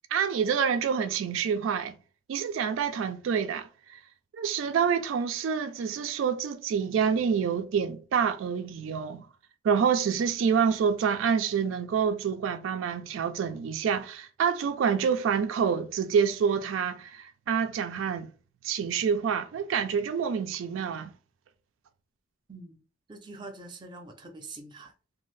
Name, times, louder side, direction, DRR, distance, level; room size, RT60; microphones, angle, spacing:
voice 1, 0.1-2.0 2.3-4.0 4.3-9.3 9.6-18.3 18.6-21.1, right 7 dB, 85° right, 0.3 m, -27 dB
voice 2, 23.1-24.9, right 2 dB, 25° right, 0.5 m, -44 dB
2.6 x 2.3 x 3.1 m
head